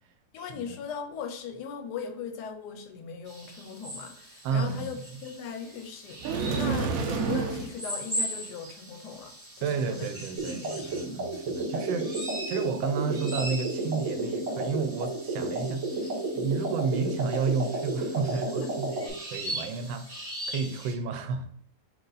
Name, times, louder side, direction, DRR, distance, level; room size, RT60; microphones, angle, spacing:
voice 1, 0.3-10.1 10.5-11.1 18.3-18.7, left 6 dB, 75° left, 7 dB, 1.1 m, -39 dB
sound 1, 3.3-20.9, right 1 dB, 25° right, 1.4 m, -40 dB
voice 2, 4.4-5.0 9.6-12.2 12.5-21.5, right 5 dB, 90° right, 8 dB, 1.3 m, -31 dB
sound 2, 6.2-7.8, right 5 dB, 65° right, 0.9 m, -28 dB
sound 3, 10.4-19.1, right 2 dB, 50° right, 1.4 m, -32 dB
4.8 x 2.5 x 3.8 m, 0.66 s
omnidirectional pair, 2.0 m